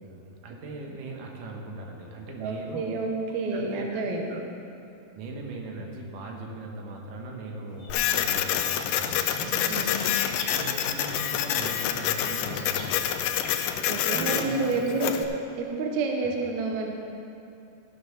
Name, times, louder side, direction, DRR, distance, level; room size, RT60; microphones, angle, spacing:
voice 1, 0.0-2.8 3.5-4.0 4.3-4.4 5.2-10.1 10.5-13.2 14.0-14.6 15.0-15.2 16.2-16.3, right 2 dB, 65° right, 0 dB, 2.3 m, -39 dB
voice 2, 2.4-4.4 9.7-10.2 13.8-15.1 15.6-16.9, right 3 dB, 85° right, 1 dB, 1.6 m, -29 dB
sound 1, 7.7-11.2 11.5-13.7, left 3 dB, 65° left, 1.9 m, -44 dB
Printer, 7.9-15.2, left 10 dB, 80° left, 2.2 m, -27 dB
15.0 x 6.7 x 5.8 m, 2.6 s
omnidirectional pair, 4.8 m